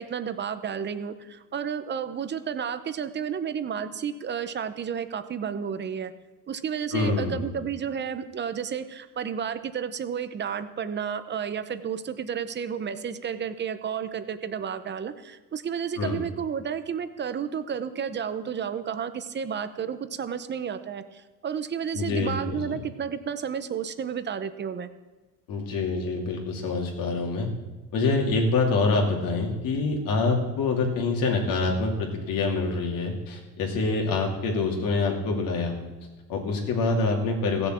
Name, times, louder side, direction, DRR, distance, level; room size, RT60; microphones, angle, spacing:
voice 1, 0.0-6.1 6.5-24.9, right 7 dB, 30° right, 11 dB, 0.8 m, -32 dB
voice 2, 6.9-7.5 16.0-16.2 21.9-22.6 25.5-27.5 27.9-35.8 36.3-37.7, left 3 dB, 65° left, 1 dB, 2.7 m, -26 dB
16.0 x 6.9 x 7.5 m, 1.2 s
cardioid pair, 130°, 37 cm